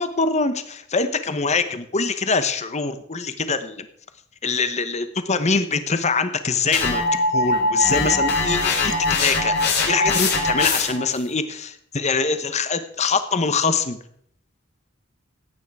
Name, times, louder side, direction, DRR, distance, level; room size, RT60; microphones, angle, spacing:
voice 1, 0.0-3.9 4.4-7.0 7.3-14.0, left 4 dB, 35° left, 11 dB, 1.0 m, -24 dB
sound 1, 6.7-11.1, left 2 dB, 55° left, 3.0 m, -21 dB
15.5 x 9.3 x 4.8 m, 0.66 s
head